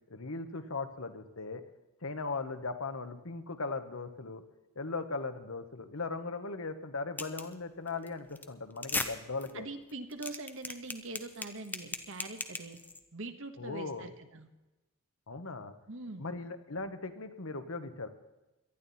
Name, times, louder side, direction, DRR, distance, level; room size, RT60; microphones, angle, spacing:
voice 1, 0.1-1.6 2.0-4.4 4.7-9.7 13.6-14.1 15.3-15.7 16.2-18.1, left 3 dB, 70° left, 9 dB, 1.2 m, -38 dB
sound 1, 7.2-7.5 7.9-8.1 8.4-8.5 8.8-9.1 9.4-9.5 9.9-13.0, left 3 dB, 10° left, 0.8 m, -36 dB
voice 2, 9.5-12.8 13.1-14.5 15.9-16.3, right 2 dB, 60° right, 8 dB, 1.4 m, -43 dB
18.5 x 12.5 x 4.2 m, 1.1 s
head